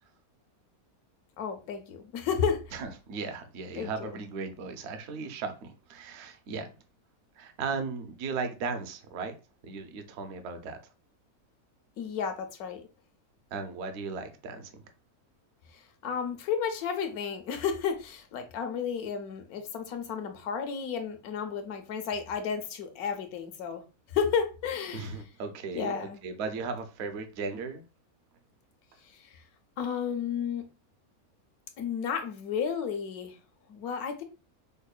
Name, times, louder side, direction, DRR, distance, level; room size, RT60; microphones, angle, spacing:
voice 1, 1.4-2.7 3.7-4.1 12.0-12.9 15.7-23.8 24.1-25.1 25.7-26.2 29.0-29.4 29.8-30.7 31.8-33.4 33.7-34.2, left 7 dB, 80° left, 1.1 m, -32 dB
voice 2, 2.7-6.7 7.4-9.3 9.6-10.8 13.5-14.7 24.9-27.8, right 4 dB, 60° right, 0.7 m, -36 dB
5.2 x 2.1 x 2.3 m
omnidirectional pair, 1.6 m